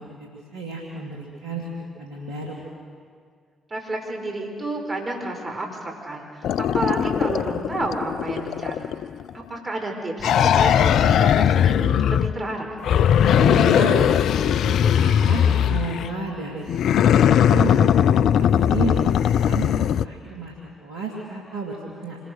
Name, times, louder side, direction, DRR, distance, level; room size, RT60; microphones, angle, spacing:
voice 1, 0.0-1.7 2.0-2.5 13.3-17.9 18.4-18.9 19.2-20.5 20.8-22.2, right 4 dB, 80° right, -3 dB, 2.9 m, -32 dB
voice 2, 3.7-8.9 9.3-12.8, right 2 dB, 35° right, 1 dB, 5.0 m, -30 dB
sound 1, 6.4-9.3 10.2-12.4 12.8-16.1 16.7-20.1, left 9 dB, 65° left, 0.5 m, -19 dB
26.0 x 21.0 x 6.5 m, 2.1 s
hypercardioid pair, 45°, 0 cm